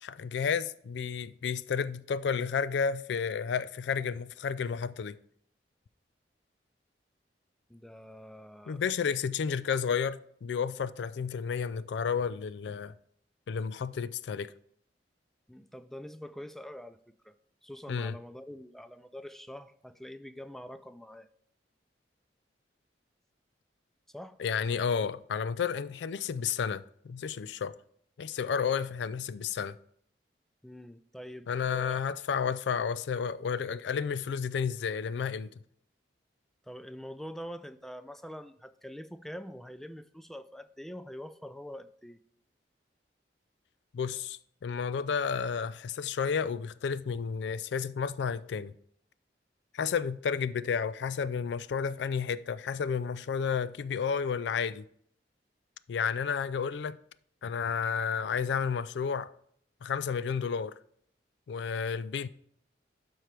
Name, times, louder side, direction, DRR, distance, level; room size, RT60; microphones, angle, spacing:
voice 1, 0.0-5.2 8.7-12.9 13.5-14.5 17.9-18.1 24.4-27.8 28.2-29.8 31.5-35.5 43.9-48.7 49.7-54.9 55.9-57.0 57.4-59.3 59.8-60.7 61.5-62.3, left 6 dB, 75° left, 0.3 m, -31 dB
voice 2, 7.7-9.1 15.5-17.0 17.2-17.3 17.6-21.3 24.1-24.4 30.6-32.0 36.6-42.2, equal, ahead, 0.3 m, -45 dB
12.5 x 4.5 x 3.3 m
head